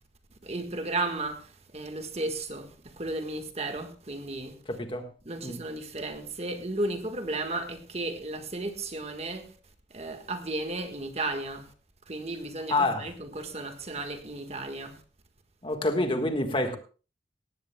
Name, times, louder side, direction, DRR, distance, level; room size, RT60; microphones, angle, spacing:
voice 1, 0.4-1.4 1.7-2.7 3.0-4.5 5.3-9.4 9.9-11.6 12.1-14.9, right 2 dB, 35° right, 1.5 m, -34 dB
voice 2, 4.7-5.1 5.4-5.6 12.7-13.1 15.6-16.8, left 2 dB, 30° left, 1.5 m, -27 dB
18.0 x 15.5 x 2.3 m
head